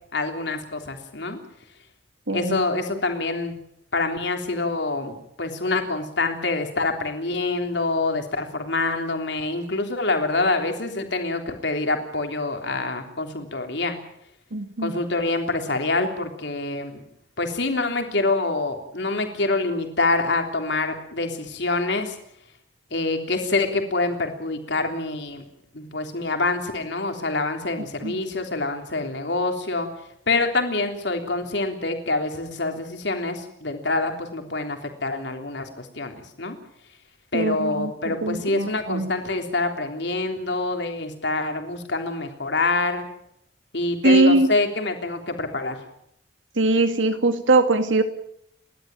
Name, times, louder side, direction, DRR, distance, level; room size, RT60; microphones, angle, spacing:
voice 1, 0.1-1.4 2.3-3.5 3.9-14.0 14.8-17.0 17.4-22.2 22.9-25.4 25.7-29.9 30.3-36.6 37.3-43.0 43.7-45.8, left 3 dB, 70° left, 5 dB, 3.4 m, -26 dB
voice 2, 2.3-2.6 14.5-15.0 28.0-28.2 37.3-39.1 44.0-44.5 46.6-48.0, right 2 dB, 85° right, 9 dB, 2.2 m, -21 dB
30.0 x 12.5 x 9.0 m, 0.75 s
head